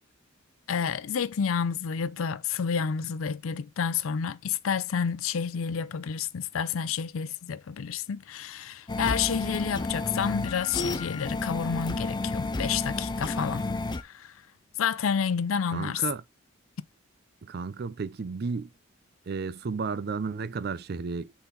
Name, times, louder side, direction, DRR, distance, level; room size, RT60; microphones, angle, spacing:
voice 1, 0.7-13.7 14.0-14.3 14.8-16.0, left 6 dB, 85° left, 0.5 m, -29 dB
sound 1, 8.9-14.0, left 2 dB, 20° left, 0.5 m, -31 dB
voice 2, 15.7-16.2 17.4-18.7 19.3-21.3, right 4 dB, 50° right, 0.4 m, -33 dB
5.8 x 4.2 x 3.9 m
head